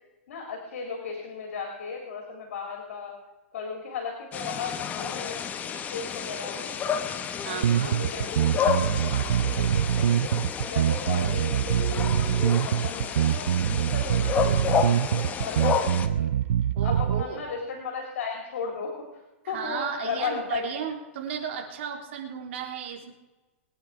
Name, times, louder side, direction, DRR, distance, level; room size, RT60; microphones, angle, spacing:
voice 1, 0.3-3.1 3.5-7.1 7.4-10.3 10.7-16.3 16.8-20.7, left 5 dB, 75° left, 1 dB, 3.6 m, -36 dB
sound 1, 4.3-16.1, left 7 dB, 20° left, 1.0 m, -31 dB
voice 2, 7.4-8.0 16.7-17.4 19.4-23.1, right 7 dB, 60° right, 2 dB, 3.5 m, -34 dB
sound 2, 7.6-17.2, right 10 dB, 80° right, 0.5 m, -24 dB
22.0 x 9.4 x 4.9 m, 1.1 s
hypercardioid pair, 145°, 7 cm